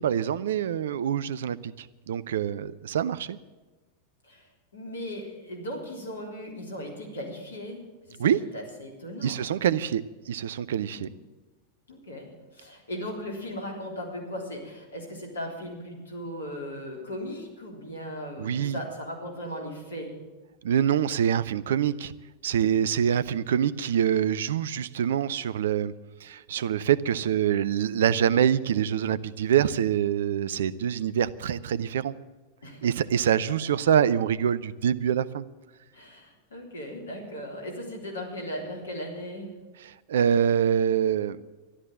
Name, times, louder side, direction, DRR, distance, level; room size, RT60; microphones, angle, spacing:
voice 1, 0.0-3.4 8.2-8.4 9.2-11.1 18.4-18.8 20.6-22.1 22.4-25.9 26.2-32.1 32.8-35.4 40.1-41.5, right 9 dB, 60° right, 17 dB, 0.5 m, -25 dB
voice 2, 4.7-7.8 8.1-9.4 10.9-11.1 11.9-20.1 32.6-32.9 35.9-39.5, equal, 70° left, 1 dB, 3.6 m, -37 dB
13.0 x 12.0 x 7.4 m, 1.2 s
figure-of-eight pair, 90°, 0 cm